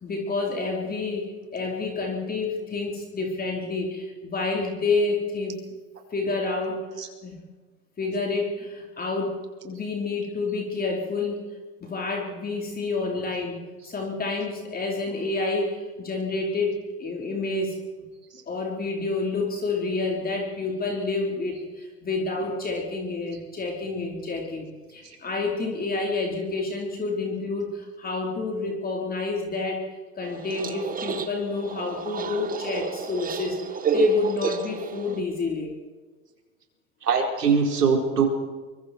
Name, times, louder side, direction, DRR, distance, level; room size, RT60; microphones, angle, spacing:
voice 1, 0.0-5.6 6.1-6.8 7.2-7.4 8.0-11.4 11.8-17.8 18.5-29.8 30.2-33.6 33.9-35.7, left 3 dB, 20° left, 0 dB, 4.3 m, -29 dB
sound 1, 30.2-35.2, right 5 dB, 20° right, 1.7 m, -29 dB
voice 2, 37.0-38.3, right 5 dB, 85° right, 2 dB, 4.8 m, -22 dB
24.0 x 24.0 x 4.7 m, 1.3 s
hypercardioid pair, 105°, 46 cm